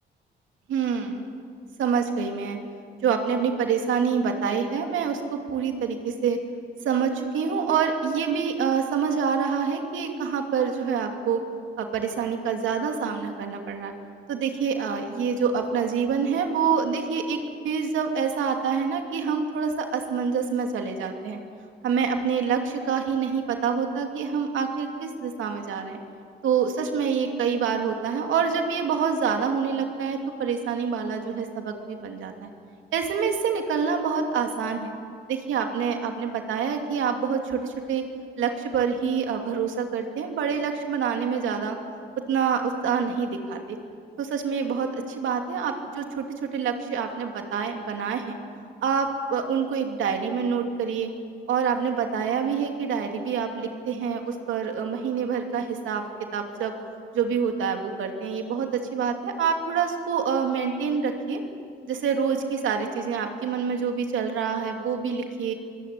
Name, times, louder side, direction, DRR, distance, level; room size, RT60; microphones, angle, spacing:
voice 1, 0.7-1.3 1.8-2.6 3.0-6.4 6.8-11.4 11.8-13.9 14.3-17.4 17.6-21.4 21.8-26.0 26.4-32.5 32.9-34.9 35.3-38.0 38.4-41.8 42.3-43.8 44.2-48.4 48.8-51.1 51.5-56.0 56.3-56.8 57.1-61.4 61.9-65.5, right 6 dB, 80° right, 4 dB, 2.8 m, -26 dB
23.0 x 17.5 x 8.5 m, 2.2 s
cardioid pair, 90°, 20 cm